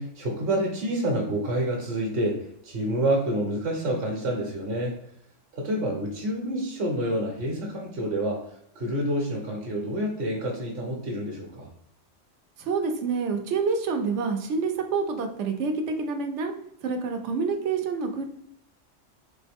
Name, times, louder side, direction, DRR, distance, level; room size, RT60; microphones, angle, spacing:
voice 1, 0.0-5.0 5.5-8.4 8.7-11.7, right 1 dB, 55° right, -1 dB, 1.0 m, -28 dB
voice 2, 12.6-16.5 16.8-18.2, right 4 dB, 80° right, 5 dB, 1.0 m, -27 dB
3.9 x 3.0 x 3.4 m, 0.71 s
omnidirectional pair, 1.2 m